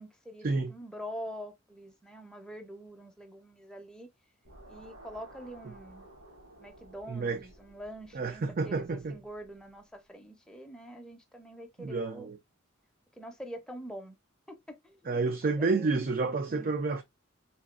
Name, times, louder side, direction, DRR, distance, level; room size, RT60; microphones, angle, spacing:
voice 1, 0.0-4.1 4.7-6.1 6.6-12.3 13.2-14.2 14.5-16.1 16.5-16.8, equal, 5° left, 0.6 m, -45 dB
sound 1, 4.4-9.7, right 1 dB, 80° right, 1.7 m, -54 dB
voice 2, 7.1-7.5 8.1-9.2 11.8-12.4 15.1-17.0, right 3 dB, 45° right, 0.4 m, -30 dB
4.0 x 2.9 x 2.3 m
head